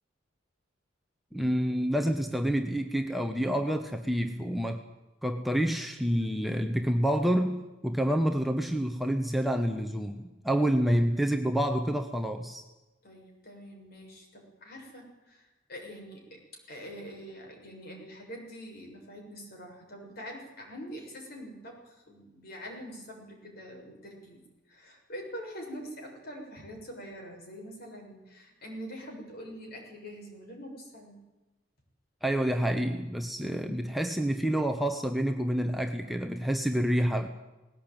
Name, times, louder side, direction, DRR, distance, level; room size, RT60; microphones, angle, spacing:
voice 1, 1.3-4.8 5.2-12.6 32.2-37.3, equal, ahead, 4 dB, 1.1 m, -28 dB
voice 2, 13.0-16.4 16.7-31.2, equal, 55° left, 1 dB, 6.8 m, -44 dB
19.5 x 17.0 x 9.1 m, 1.1 s
head